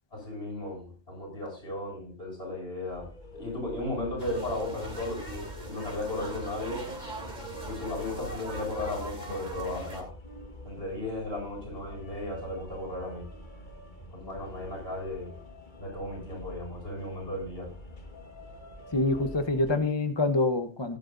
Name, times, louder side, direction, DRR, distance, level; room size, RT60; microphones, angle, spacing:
voice 1, 0.1-6.9 7.6-10.1 10.6-13.3 14.1-15.4 15.8-17.7, left 2 dB, 60° left, -1 dB, 7.8 m, -35 dB
sound 1, 2.9-19.8, left 1 dB, 45° left, 2.0 m, -47 dB
sound 2, 4.2-10.0, right 1 dB, 40° right, 3.1 m, -40 dB
voice 2, 18.9-21.0, left 2 dB, 25° left, 8 dB, 0.9 m, -26 dB
16.5 x 12.0 x 2.7 m, 0.33 s
omnidirectional pair, 1.2 m